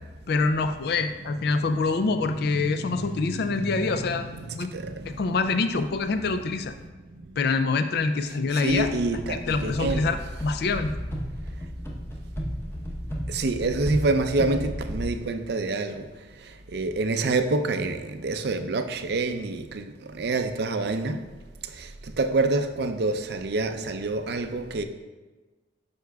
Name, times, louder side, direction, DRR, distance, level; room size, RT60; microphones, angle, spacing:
voice 1, 0.3-4.7 5.1-6.7 7.4-8.9 9.3-10.9, left 4 dB, 60° left, 0.4 m, -26 dB
voice 2, 2.3-5.3 8.5-10.1 13.3-16.1 16.7-21.2 21.7-21.9 22.2-24.8, right 3 dB, 60° right, 0.5 m, -27 dB
sound 1, 8.7-15.1, equal, 15° left, 0.9 m, -33 dB
9.5 x 6.5 x 2.3 m
head